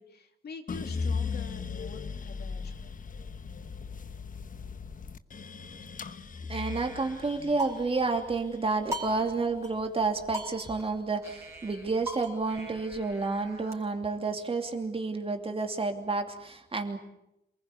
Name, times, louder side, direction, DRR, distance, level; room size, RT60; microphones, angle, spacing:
voice 1, 0.0-2.8, left 4 dB, 70° left, 6 dB, 2.8 m, -45 dB
sound 1, 0.7-10.9 11.3-12.1, left 5 dB, 50° left, 1.1 m, -38 dB
sound 2, 6.5-8.2 8.9-9.7 10.0-10.1 10.3-13.7, equal, 15° right, 5.2 m, -41 dB
voice 2, 6.5-17.0, right 3 dB, 35° right, 5 dB, 2.8 m, -30 dB
27.5 x 20.5 x 8.4 m, 0.83 s
wide cardioid pair, 135°, 17 cm